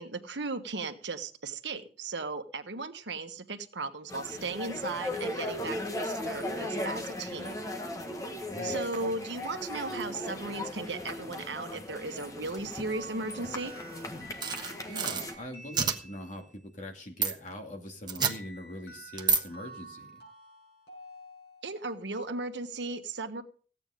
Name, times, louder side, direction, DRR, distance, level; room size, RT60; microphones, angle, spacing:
voice 1, 0.0-7.5 8.6-13.7 21.6-23.4, right 3 dB, 80° right, 7 dB, 1.3 m, -36 dB
sound 1, 4.1-15.3, left 1 dB, 20° left, 1.5 m, -37 dB
voice 2, 8.5-8.9 14.9-20.2, left 1 dB, 45° left, 2 dB, 2.4 m, -42 dB
sound 2, 12.9-16.6 18.2-22.0, right 2 dB, 65° left, 6.5 m, -50 dB
sound 3, 14.4-15.2 15.7-16.0 17.2-17.3 18.1-18.3 19.2-19.4, right 5 dB, 25° right, 1.3 m, -27 dB
15.5 x 9.0 x 5.1 m, 0.42 s
head